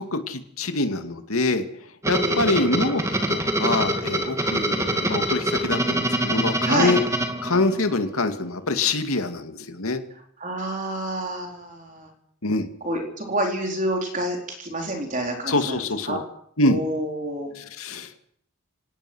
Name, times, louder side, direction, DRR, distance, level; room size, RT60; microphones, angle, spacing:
voice 1, 0.0-1.7 2.1-7.0 7.4-10.0 12.4-12.7 15.5-16.2 16.6-16.8 17.5-18.2, left 2 dB, 90° left, 7 dB, 2.4 m, -25 dB
sound 1, 2.0-8.1, right 1 dB, 15° right, 2.2 m, -25 dB
voice 2, 2.1-2.8 6.6-7.0 10.4-12.1 12.8-15.8 16.1-16.2 16.6-17.5, right 1 dB, 35° right, 2 dB, 4.3 m, -28 dB
25.5 x 18.0 x 6.4 m, 0.66 s
head